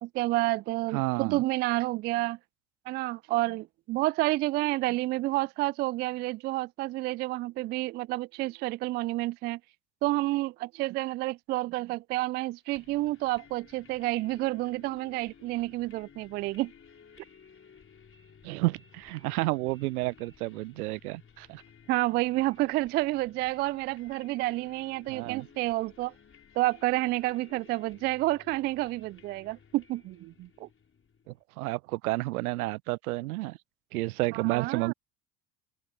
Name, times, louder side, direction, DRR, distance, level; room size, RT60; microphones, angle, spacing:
voice 1, 0.0-2.4 2.9-9.6 10.0-16.7 21.9-26.1 26.6-30.7 34.3-34.9, right 18 dB, 25° right, 0.3 m, -29 dB
voice 2, 0.9-1.4 18.4-21.6 25.1-25.5 31.3-33.6 33.9-34.9, right 20 dB, 60° right, 0.8 m, -31 dB
sound 1, 12.7-31.4, left 6 dB, 25° left, 5.0 m, -56 dB
open air
figure-of-eight pair, 70°, 50 cm